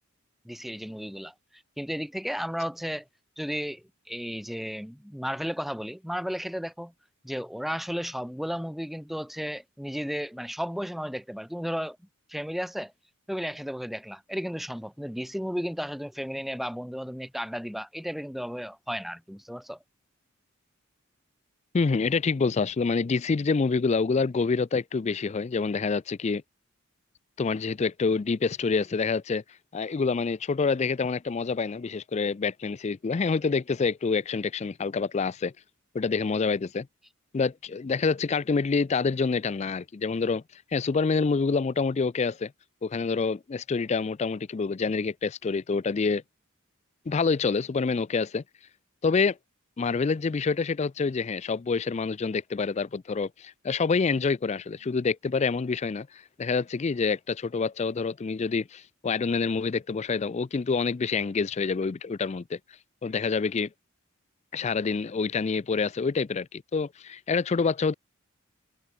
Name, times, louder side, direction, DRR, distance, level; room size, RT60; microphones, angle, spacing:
voice 1, 0.4-3.0 3.4-6.9 7.2-12.0 12.3-12.9 13.3-19.8, equal, ahead, 0.9 m, -34 dB
voice 2, 21.7-26.4 27.4-29.4 29.7-35.5 35.9-36.9 37.3-40.4 40.7-42.5 42.8-46.2 47.1-48.4 49.0-49.4 49.8-62.6 63.0-63.7 64.5-67.9, left 4 dB, 30° left, 0.4 m, -27 dB
head